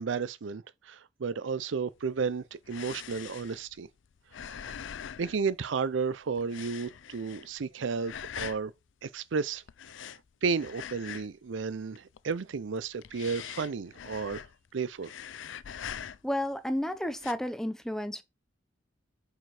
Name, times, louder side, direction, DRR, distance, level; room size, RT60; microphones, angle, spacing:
voice 1, 0.0-3.9 4.4-4.7 5.2-8.7 9.0-9.6 10.4-14.5 14.7-15.1, right 5 dB, 70° right, 0.5 m, -33 dB
sound 1, 2.0-6.1 6.4-7.7 8.0-8.7 9.7-11.5 11.7-12.3 12.8-14.7 15.0-16.5 17.1-17.3, left 9 dB, 70° left, 0.4 m, -43 dB
voice 2, 16.2-18.2, left 1 dB, 5° left, 0.8 m, -32 dB
7.6 x 4.5 x 4.8 m
head